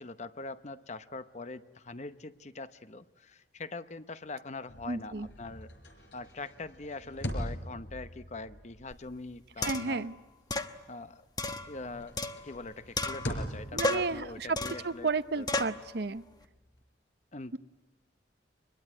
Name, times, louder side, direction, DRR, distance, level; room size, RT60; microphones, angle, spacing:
voice 1, 0.0-5.7 6.1-10.1 10.9-11.2 11.7-12.2 12.4-15.1 15.4-15.5 17.3-17.6, left 3 dB, 40° left, 12 dB, 0.9 m, -42 dB
sound 1, 4.6-11.1 11.4-16.8, equal, 90° left, 5.0 m, -43 dB
voice 2, 4.9-5.3 9.6-10.1 13.7-14.6 14.8-16.2 17.5-17.6, right 4 dB, 60° right, 13 dB, 0.8 m, -32 dB
sound 2, 8.9-9.0 9.6-10.0 10.5-10.7 11.4-12.6 13.0-13.5 13.8-14.2 14.6-14.9 15.5-15.8, left 2 dB, 20° left, 1.1 m, -33 dB
25.5 x 22.0 x 9.7 m, 1.2 s
head